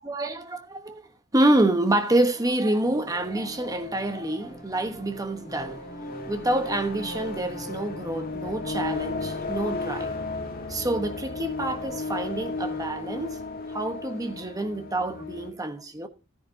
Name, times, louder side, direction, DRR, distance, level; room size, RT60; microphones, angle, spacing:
voice 1, 0.0-1.1 1.3-10.2 10.7-13.4 13.7-16.1, right 1 dB, 15° right, 1.1 m, -27 dB
sound 1, 2.7-15.5, left 3 dB, 45° left, 1.6 m, -35 dB
14.0 x 10.5 x 2.8 m
head